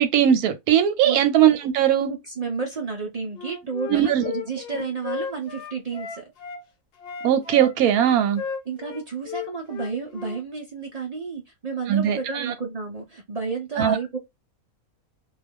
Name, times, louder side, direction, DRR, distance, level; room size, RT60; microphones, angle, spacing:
voice 1, 0.0-2.1 3.9-4.2 4.7-4.8 7.2-8.4 11.9-12.5 13.8-14.0, right 10 dB, 90° right, 1.1 m, -19 dB
voice 2, 2.1-6.3 8.7-14.2, right 4 dB, 55° right, 0.4 m, -31 dB
Wind instrument woodwind instrument, 3.3-6.6 7.0-10.4, left 6 dB, 60° left, 0.6 m, -35 dB
2.4 x 2.3 x 3.4 m
omnidirectional pair, 1.5 m